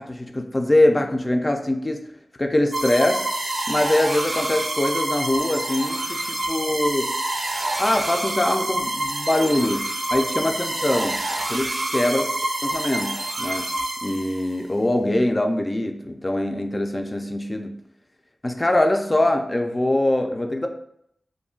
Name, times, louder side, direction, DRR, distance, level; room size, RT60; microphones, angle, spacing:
voice 1, 0.0-2.0 2.4-3.2 3.7-7.1 7.8-11.2 11.5-12.2 12.6-13.7 14.0-17.7 18.4-20.7, left 1 dB, 25° left, 4 dB, 0.4 m, -23 dB
sound 1, 2.7-14.6, right 1 dB, 60° right, 0.4 m, -27 dB
2.4 x 2.1 x 3.6 m, 0.70 s
wide cardioid pair, 90°, 0 cm